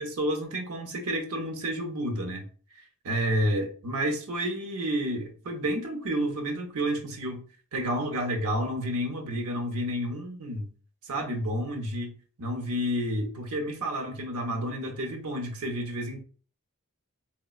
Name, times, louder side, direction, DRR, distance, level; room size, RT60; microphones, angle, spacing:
voice 1, 0.0-2.4 2.7-7.4 7.7-10.7 11.0-12.1 12.4-16.2, equal, 80° right, 0.6 m, -30 dB
3.9 x 2.0 x 2.3 m
head